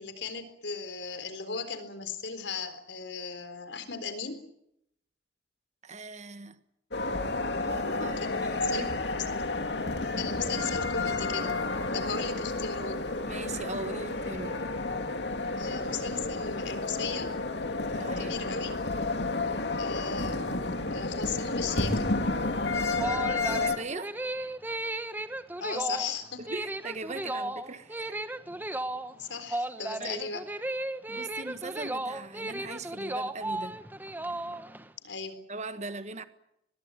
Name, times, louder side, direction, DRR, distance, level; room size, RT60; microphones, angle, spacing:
voice 1, 0.0-4.4 8.2-8.8 9.1-9.4 10.2-11.6 11.9-13.0 15.6-17.3 18.0-18.7 19.8-22.1 25.6-26.4 29.1-30.5 35.0-35.4, left 5 dB, 90° left, 4.0 m, -37 dB
voice 2, 5.8-6.6 7.6-8.9 13.2-14.6 17.9-18.4 23.5-24.1 26.4-28.2 30.0-30.2 31.1-33.8 35.5-36.2, right 3 dB, 40° right, 1.5 m, -40 dB
sound 1, 6.9-23.8, left 3 dB, 70° left, 2.6 m, -31 dB
sound 2, 22.8-34.9, right 1 dB, 10° right, 1.2 m, -35 dB
23.5 x 21.5 x 9.2 m
head